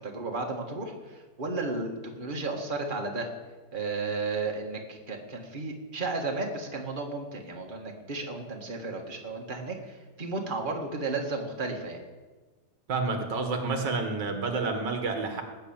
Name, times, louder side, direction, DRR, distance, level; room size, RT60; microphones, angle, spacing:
voice 1, 0.0-3.3 3.7-12.0, right 3 dB, 30° right, 1 dB, 1.9 m, -33 dB
voice 2, 12.9-15.4, right 3 dB, 85° right, 5 dB, 2.2 m, -29 dB
18.0 x 6.8 x 8.8 m, 1.3 s
omnidirectional pair, 1.9 m